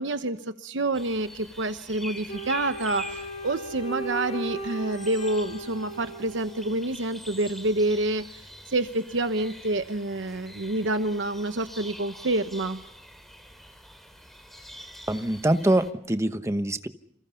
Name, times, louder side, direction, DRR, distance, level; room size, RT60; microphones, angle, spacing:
voice 1, 0.0-8.4 8.7-12.8, right 2 dB, 70° right, 9 dB, 1.1 m, -28 dB
sound 1, 0.9-15.9, equal, ahead, 3.2 m, -45 dB
Wind instrument woodwind instrument, 2.3-6.9, right 1 dB, 35° left, 2.8 m, -37 dB
voice 2, 15.1-16.9, right 1 dB, 15° right, 10 dB, 1.0 m, -24 dB
29.5 x 28.0 x 5.8 m, 0.75 s
head